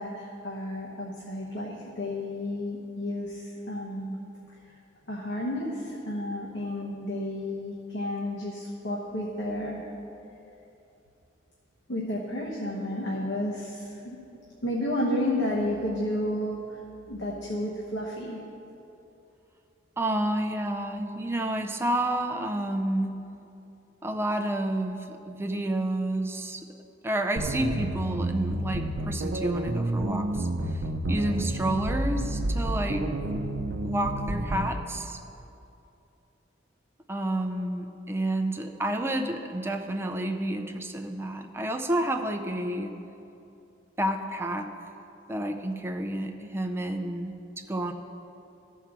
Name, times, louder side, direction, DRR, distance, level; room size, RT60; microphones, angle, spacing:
voice 1, 0.0-4.2 5.1-9.9 11.9-14.2 14.6-16.8 17.1-18.4, left 1 dB, 65° left, -4 dB, 1.1 m, -31 dB
voice 2, 20.0-23.2 24.0-26.6 27.0-30.5 31.1-33.1 33.8-35.2 37.1-42.9 44.0-44.7 45.3-47.9, right 1 dB, 15° right, 5 dB, 0.4 m, -30 dB
sound 1, 27.4-34.7, right 1 dB, 65° right, 0.6 m, -30 dB
13.5 x 4.6 x 6.0 m, 2.8 s
head